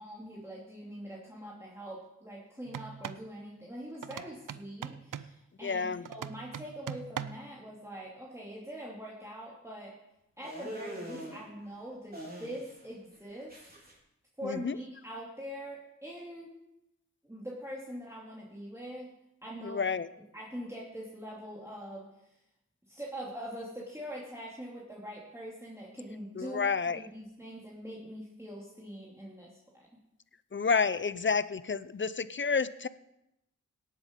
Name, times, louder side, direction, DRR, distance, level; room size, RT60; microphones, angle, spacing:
voice 1, 0.0-9.9 10.4-13.6 14.4-16.5 17.3-19.1 19.4-19.8 20.3-22.1 22.9-29.9, equal, 10° right, -5 dB, 2.8 m, -43 dB
sound 1, 2.7-3.3 4.0-5.4 6.0-7.5, right 9 dB, 85° right, 0.6 m, -41 dB
voice 2, 5.6-6.1 14.4-14.8 19.6-20.1 26.3-27.0 30.5-32.9, left 5 dB, 40° left, 16 dB, 0.6 m, -30 dB
sound 2, 10.4-11.4 12.1-12.9 13.1-13.9, right 1 dB, 30° right, 4.1 m, -43 dB
17.5 x 7.8 x 5.3 m, 0.85 s
cardioid pair, 55°, 31 cm